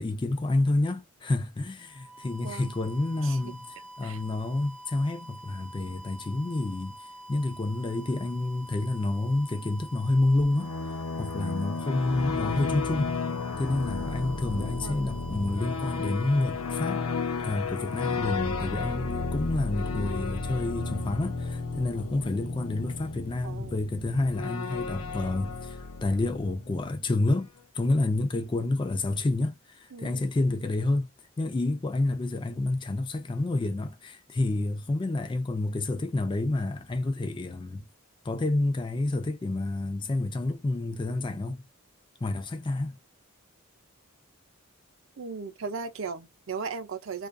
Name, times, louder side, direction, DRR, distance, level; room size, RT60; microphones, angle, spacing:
voice 1, 0.0-7.0 7.3-10.8 11.2-13.1 13.6-17.1 17.4-31.1 31.4-37.8 38.2-41.6 42.2-43.0, left 2 dB, 20° left, 0.3 m, -29 dB
sound 1, 1.8-17.6, right 1 dB, 10° right, 0.7 m, -47 dB
sound 2, 10.3-27.0, left 4 dB, 75° left, 0.5 m, -33 dB
voice 2, 29.9-30.2 45.2-47.3, right 5 dB, 60° right, 0.5 m, -37 dB
2.4 x 2.4 x 2.2 m
head